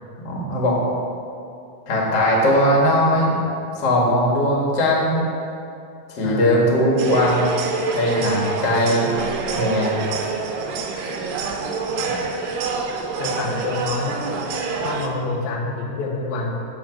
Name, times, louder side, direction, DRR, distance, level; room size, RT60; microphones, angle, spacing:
voice 1, 0.2-0.8 1.9-3.3 3.8-5.2 6.1-7.6 7.9-9.1 9.5-9.9 12.0-12.1, left 1 dB, 40° left, -3 dB, 1.8 m, -19 dB
sound 1, 7.0-15.1, right 4 dB, 80° right, 2.4 m, -26 dB
voice 2, 13.2-14.3 14.8-16.6, left 3 dB, 90° left, 0 dB, 2.9 m, -27 dB
7.9 x 7.1 x 6.0 m, 2.6 s
omnidirectional pair, 4.0 m